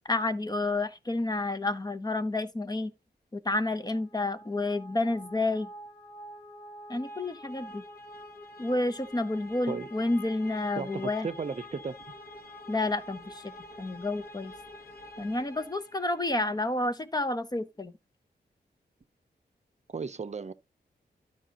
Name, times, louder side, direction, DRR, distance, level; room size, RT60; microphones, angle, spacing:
voice 1, 0.1-2.9 3.3-5.7 6.9-7.8 8.6-11.3 12.7-13.4 13.8-14.5 15.2-17.9, left 2 dB, 25° left, 0.7 m, -30 dB
sound 1, 3.7-16.5, left 1 dB, 60° left, 1.3 m, -47 dB
voice 2, 10.8-11.9 19.9-20.5, right 5 dB, 40° right, 0.7 m, -35 dB
13.0 x 5.0 x 2.9 m
wide cardioid pair, 105°, 17 cm